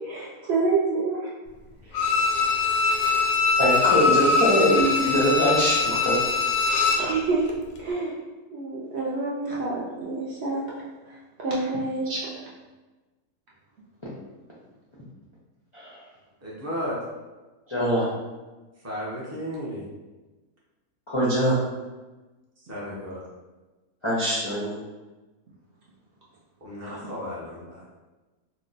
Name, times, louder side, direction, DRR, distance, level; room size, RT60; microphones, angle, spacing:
voice 1, 0.1-1.3 7.0-7.5 7.8-8.1 8.5-10.6 11.1-12.0, right 3 dB, 60° right, -6 dB, 0.7 m, -27 dB
Bowed string instrument, 1.9-7.1 7.5-7.6, left 4 dB, 65° left, 0.7 m, -22 dB
voice 2, 3.6-6.2 12.1-12.2 15.7-16.0 17.7-18.1 21.1-21.6 24.0-24.8, equal, 50° left, -8 dB, 0.3 m, -23 dB
voice 3, 16.4-16.9 18.8-19.8 22.7-23.2 26.6-27.8, equal, 20° right, -6 dB, 0.4 m, -34 dB
2.9 x 2.1 x 3.9 m, 1.2 s
omnidirectional pair, 1.6 m